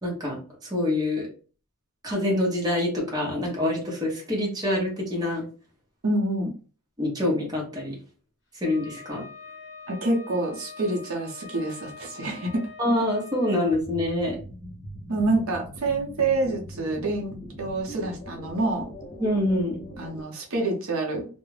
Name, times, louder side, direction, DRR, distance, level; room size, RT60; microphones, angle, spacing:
voice 1, 0.0-1.3 2.0-5.4 7.0-8.0 8.6-9.2 12.8-14.4 19.2-19.8, left 1 dB, 15° right, -3 dB, 0.8 m, -26 dB
voice 2, 6.0-6.5 9.9-12.7 15.1-18.9 20.0-21.3, right 2 dB, 65° right, 1 dB, 0.6 m, -27 dB
Wind instrument woodwind instrument, 8.6-13.8, left 5 dB, 55° left, 1.1 m, -44 dB
sound 1, 13.6-20.2, equal, 20° left, 0.5 m, -41 dB
2.3 x 2.1 x 3.1 m, 0.38 s
head